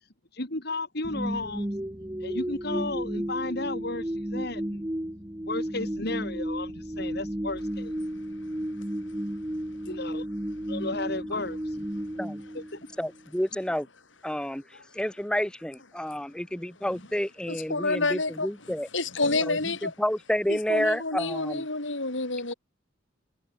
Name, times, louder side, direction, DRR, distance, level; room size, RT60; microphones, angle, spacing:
voice 1, 0.3-1.7 2.2-4.8 5.5-7.9 9.9-10.3 10.7-11.6 12.5-12.8, left 2 dB, 55° left, 3.5 m, -33 dB
sound 1, 1.0-13.2, equal, 15° right, 1.2 m, -33 dB
voice 2, 13.0-13.9 14.2-18.9 19.5-21.7, equal, 5° left, 0.7 m, -30 dB
voice 3, 17.5-18.5 18.9-19.9 20.5-22.5, left 3 dB, 75° left, 5.4 m, -28 dB
head